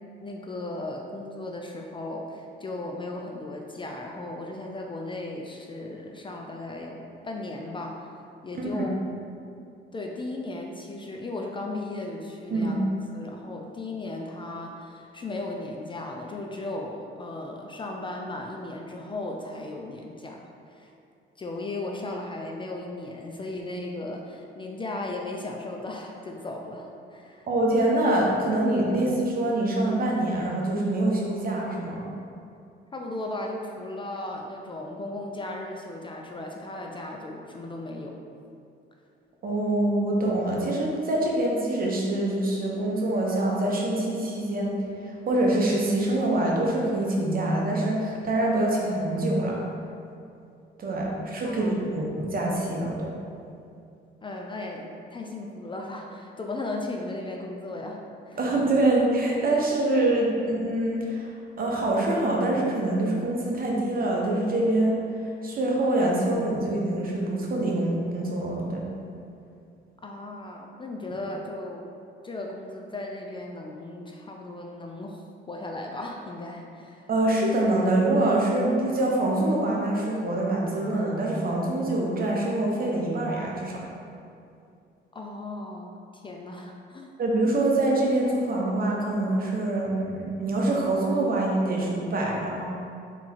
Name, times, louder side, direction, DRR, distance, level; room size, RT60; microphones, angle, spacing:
voice 1, 0.2-8.1 8.4-8.9 9.9-12.9 13.1-20.9 21.4-27.5 32.9-38.2 51.4-51.8 54.2-58.0 58.3-58.4 70.0-71.9 72.2-77.0 85.1-87.1, left 2 dB, 25° left, 1 dB, 0.4 m, -36 dB
voice 2, 12.5-12.8 27.5-32.1 39.4-49.6 50.8-53.1 58.4-61.3 61.6-68.9 77.1-83.8 87.2-92.7, right 1 dB, 45° right, -2 dB, 0.9 m, -25 dB
3.6 x 2.9 x 4.2 m, 2.5 s
cardioid pair, 90°, 20 cm